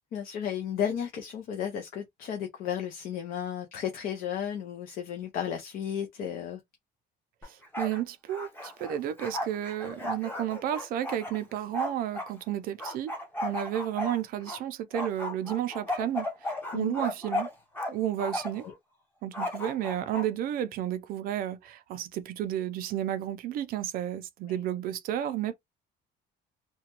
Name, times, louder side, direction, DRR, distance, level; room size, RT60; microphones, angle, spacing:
voice 1, 0.1-6.6 16.7-17.0 18.6-18.7 24.5-24.6, left 9 dB, 50° left, 0.6 m, -33 dB
Bark, 7.4-8.0 8.3-12.3 12.8-14.6 14.9-17.9 18.2-18.7 19.3-20.3, left 1 dB, 10° left, 0.8 m, -35 dB
voice 2, 7.5-13.1 13.4-17.5 17.9-18.7 19.2-25.5, right 11 dB, 50° right, 0.4 m, -32 dB
2.9 x 2.2 x 2.9 m
cardioid pair, 180°, 19 cm